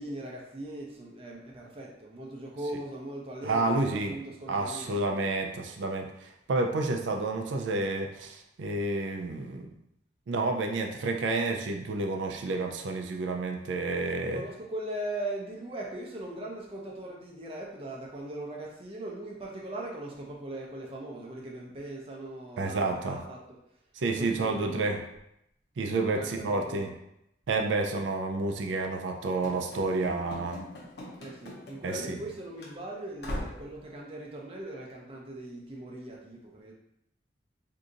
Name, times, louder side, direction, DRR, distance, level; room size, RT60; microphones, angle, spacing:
voice 1, 0.0-5.2 14.3-23.4 24.2-25.0 25.9-26.9 31.2-36.7, right 1 dB, 30° right, -2 dB, 0.5 m, -40 dB
voice 2, 3.4-4.2 4.5-9.7 10.3-14.4 22.6-23.2 24.0-25.0 25.8-26.9 27.5-30.6 31.8-32.2, right 3 dB, 80° right, 3 dB, 0.4 m, -30 dB
Run / Slam, 29.4-32.3 32.6-32.7 33.2-33.7, left 1 dB, 60° left, 0.7 m, -41 dB
2.7 x 2.4 x 3.7 m, 0.80 s
head